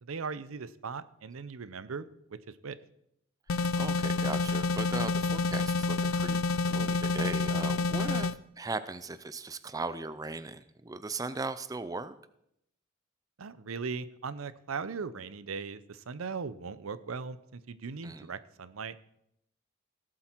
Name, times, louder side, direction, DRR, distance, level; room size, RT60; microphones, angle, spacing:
voice 1, 0.0-2.8 8.0-8.2 13.4-19.0, right 5 dB, 90° right, 15 dB, 0.6 m, -39 dB
sound 1, 3.5-8.3, left 3 dB, 85° left, 0.5 m, -28 dB
voice 2, 3.5-8.3 8.6-12.1 18.0-18.3, right 3 dB, 15° right, 14 dB, 0.4 m, -38 dB
17.5 x 7.6 x 4.5 m, 0.77 s
head